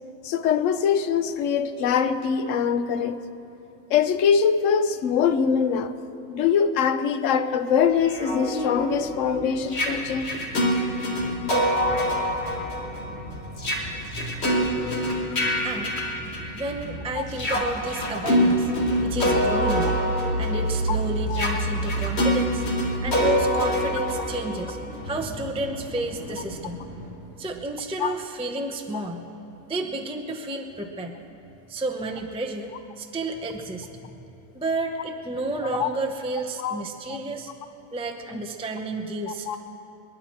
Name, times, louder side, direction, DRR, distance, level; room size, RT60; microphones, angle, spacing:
voice 1, 0.2-3.2 3.9-6.0 6.3-10.3 15.2-15.3 17.2-17.3 21.3-21.4 28.0-28.1 35.8-35.9 36.6-36.8 39.3-39.6, left 7 dB, 65° left, 10 dB, 1.0 m, -23 dB
sound 1, 7.7-27.2, right 1 dB, 50° right, 4.1 m, -40 dB
sound 2, 8.0-16.8 17.3-25.1, equal, 50° left, 1.8 m, -26 dB
voice 2, 15.6-16.0 16.5-18.7 19.0-20.0 20.4-24.8 25.0-26.8 27.4-29.2 29.7-31.2 31.7-34.2 34.5-37.5 37.9-39.6, right 2 dB, 5° right, 2 dB, 0.6 m, -31 dB
sound 3, 18.7-26.4, right 3 dB, 85° right, 1.4 m, -30 dB
28.0 x 10.5 x 4.4 m, 2.9 s
omnidirectional pair, 1.5 m